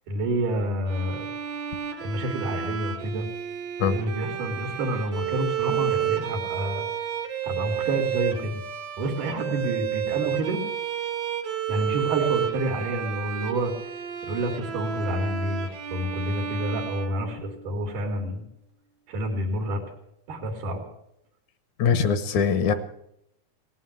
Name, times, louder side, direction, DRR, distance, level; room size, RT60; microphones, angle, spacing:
voice 1, 0.1-1.3 2.0-3.3 3.9-6.9 7.4-8.6 9.0-10.6 11.7-13.7 14.2-18.5 19.1-19.8 20.3-20.8, right 1 dB, 80° right, 2 dB, 3.5 m, -28 dB
Bowed string instrument, 0.9-17.9, right 9 dB, 65° right, 2.2 m, -31 dB
voice 2, 21.8-22.7, left 6 dB, 70° left, 11 dB, 2.4 m, -22 dB
18.5 x 9.4 x 7.8 m, 0.77 s
omnidirectional pair, 3.6 m